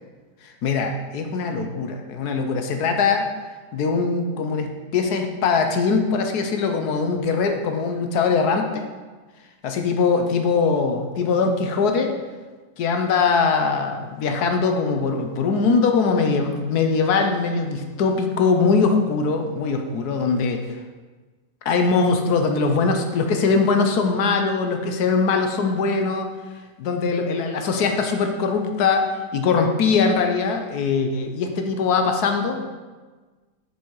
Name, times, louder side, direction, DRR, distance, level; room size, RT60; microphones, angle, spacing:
voice 1, 0.4-3.3 3.7-8.8 9.6-12.1 12.8-20.8 21.6-26.3 26.8-29.0 29.3-32.6, left 4 dB, 70° left, 5 dB, 1.3 m, -21 dB
7.0 x 6.4 x 4.7 m, 1.3 s
omnidirectional pair, 1.8 m